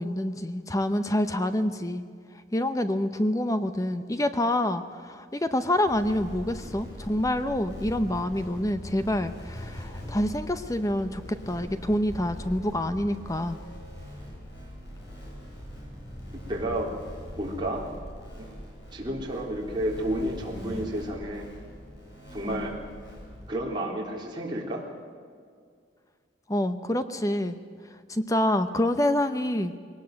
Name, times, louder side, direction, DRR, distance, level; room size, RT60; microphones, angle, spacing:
voice 1, 0.0-2.0 2.5-13.6 26.5-27.6 28.1-29.7, left 1 dB, 20° left, 10 dB, 0.7 m, -27 dB
sound 1, 5.8-23.5, equal, 65° left, 7.8 m, -42 dB
voice 2, 16.5-16.9 17.4-17.8 18.9-21.5 22.3-22.8 23.5-24.8, right 1 dB, 25° right, -3 dB, 3.7 m, -31 dB
21.5 x 18.5 x 7.8 m, 2.1 s
head